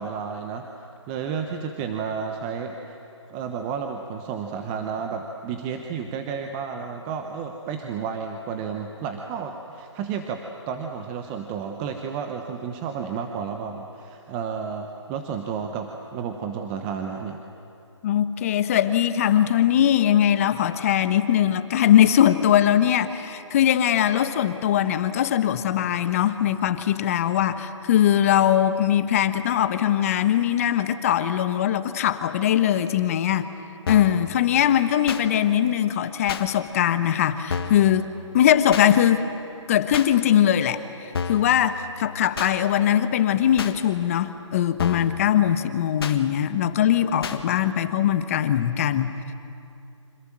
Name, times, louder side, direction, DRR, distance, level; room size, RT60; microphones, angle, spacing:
voice 1, 0.0-3.0 3.3-17.4, right 6 dB, 15° right, 4 dB, 1.0 m, -32 dB
voice 2, 18.0-33.5 33.9-38.1 38.3-39.3 39.7-40.8 41.3-49.3, left 10 dB, 30° left, 11 dB, 1.1 m, -21 dB
sound 1, 33.9-34.2 35.1-35.2 36.3-36.5 37.5-37.9 38.7-38.9 39.9-40.1 41.1-41.5 42.4-42.5 43.6-43.7 44.8-45.1 46.0-46.2 47.2-47.4, left 6 dB, 50° left, 1.8 m, -30 dB
29.0 x 26.0 x 7.5 m, 2.7 s
hypercardioid pair, 160°, 16 cm